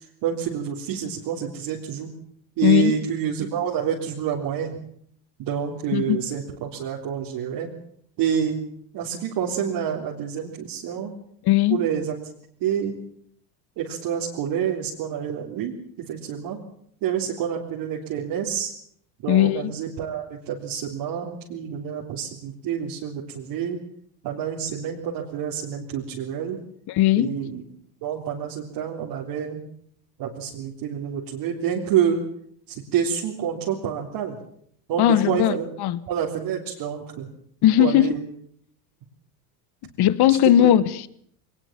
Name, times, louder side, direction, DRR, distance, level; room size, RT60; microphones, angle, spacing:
voice 1, 0.2-2.1 2.6-4.8 5.4-7.7 8.2-8.6 8.9-11.1 11.7-12.2 12.6-12.9 13.8-15.7 16.1-16.6 17.0-18.7 19.2-23.8 24.2-26.6 27.2-27.6 28.0-29.6 30.2-32.2 32.7-34.4 34.9-35.7 36.1-37.3 37.8-38.2 40.3-40.7, right 9 dB, 55° right, 3.7 m, -28 dB
voice 2, 2.6-2.9 5.9-6.2 11.4-11.8 19.3-19.7 26.9-27.4 35.0-36.0 37.6-38.1 40.0-41.1, left 12 dB, 50° left, 1.4 m, -18 dB
21.5 x 20.0 x 7.4 m
supercardioid pair, 120°, 50 cm